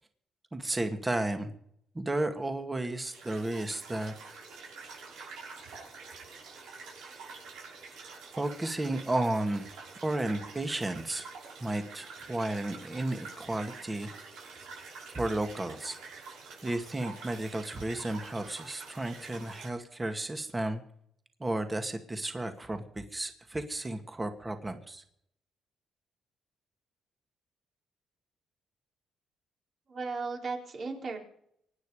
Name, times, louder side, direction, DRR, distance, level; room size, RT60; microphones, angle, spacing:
voice 1, 0.5-1.5 1.9-4.1 8.4-9.7 10.0-11.3 11.6-14.1 15.1-16.0 16.6-20.8 21.4-25.0, right 2 dB, 20° right, 7 dB, 2.1 m, -33 dB
sound 1, 2.9-19.7, right 4 dB, 85° right, 6.9 m, -47 dB
voice 2, 29.9-31.2, right 4 dB, 50° right, 1 dB, 4.5 m, -35 dB
25.0 x 9.7 x 5.0 m, 0.71 s
cardioid pair, 90°, 0 cm